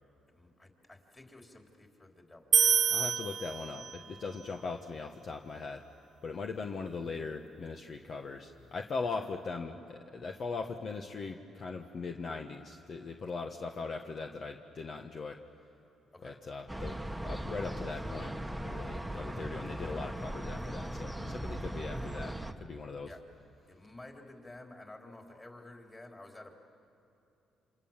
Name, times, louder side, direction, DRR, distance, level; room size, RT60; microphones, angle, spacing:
voice 1, 0.3-2.6 5.5-5.6 16.1-16.4 23.0-23.2 23.7-26.6, left 2 dB, 20° left, 2 dB, 4.0 m, -51 dB
sound 1, 2.5-4.1, right 7 dB, 50° right, 0.5 m, -27 dB
voice 2, 2.9-5.8 6.2-15.4 16.2-17.0 17.2-23.1, left 4 dB, 50° left, 4 dB, 1.4 m, -40 dB
sound 2, 16.7-22.5, right 1 dB, 5° right, 1.4 m, -38 dB
28.5 x 27.5 x 7.5 m, 2.8 s
cardioid pair, 90°, 0 cm